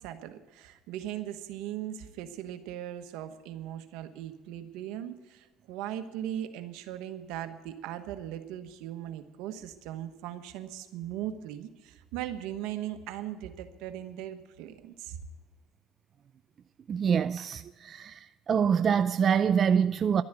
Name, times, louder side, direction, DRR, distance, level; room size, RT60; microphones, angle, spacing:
voice 1, 0.0-15.2, right 11 dB, 80° right, 1.2 m, -39 dB
voice 2, 16.9-18.2 18.5-20.2, right 7 dB, 40° right, 0.4 m, -25 dB
12.0 x 9.6 x 9.0 m
supercardioid pair, 95°, 0 cm